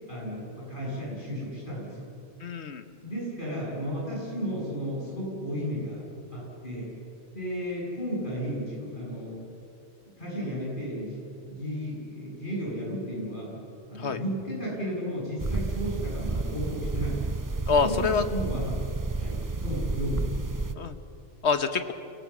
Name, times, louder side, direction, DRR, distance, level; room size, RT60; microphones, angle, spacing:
voice 1, 0.1-2.1 3.0-6.0 6.3-6.9 7.3-9.4 10.2-13.6 13.9-17.4 17.8-18.8 19.2-20.3, equal, 45° left, -5 dB, 8.0 m, -33 dB
voice 2, 2.4-2.8 14.0-14.2 17.7-18.2 20.7-21.0 21.4-21.9, left 5 dB, 70° left, 10 dB, 1.4 m, -26 dB
sound 1, 15.4-20.7, right 3 dB, 25° right, 0.5 m, -31 dB
28.5 x 19.0 x 7.4 m, 2.5 s
omnidirectional pair, 1.2 m